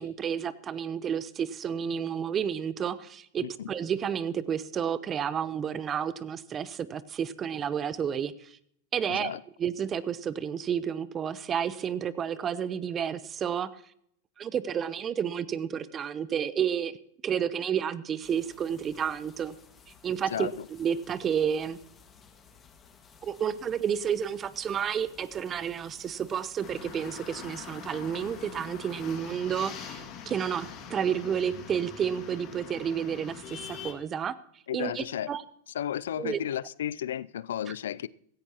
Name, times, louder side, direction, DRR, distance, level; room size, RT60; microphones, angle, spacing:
voice 1, 0.0-8.6 8.9-13.8 14.4-17.0 17.2-19.5 20.0-20.5 20.8-21.8 23.2-34.4 34.7-35.4 36.2-36.4 37.7-37.8, right 8 dB, 30° right, 0.7 m, -31 dB
voice 2, 3.4-3.7 9.1-9.4 20.3-20.7 34.7-35.3 35.7-38.1, left 10 dB, 80° left, 0.4 m, -33 dB
sound 1, 18.2-29.2, left 6 dB, 25° left, 1.8 m, -56 dB
sound 2, 26.6-33.9, left 7 dB, 45° left, 2.2 m, -43 dB
16.5 x 14.5 x 3.0 m
hypercardioid pair, 115°, 0 cm